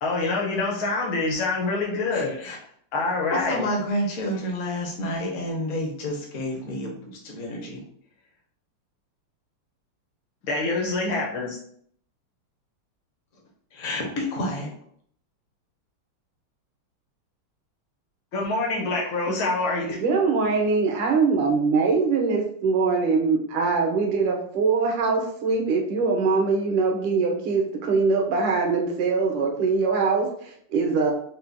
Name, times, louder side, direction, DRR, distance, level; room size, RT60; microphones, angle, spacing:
voice 1, 0.0-2.3 2.9-3.6 10.5-11.6 18.3-20.0, left 3 dB, 65° left, -2 dB, 1.8 m, -26 dB
voice 2, 2.1-2.6 3.3-7.8 13.7-14.7, left 1 dB, 50° left, -1 dB, 0.9 m, -29 dB
voice 3, 20.0-31.1, right 4 dB, 90° right, 1 dB, 1.7 m, -23 dB
6.0 x 2.2 x 2.7 m, 0.64 s
omnidirectional pair, 2.4 m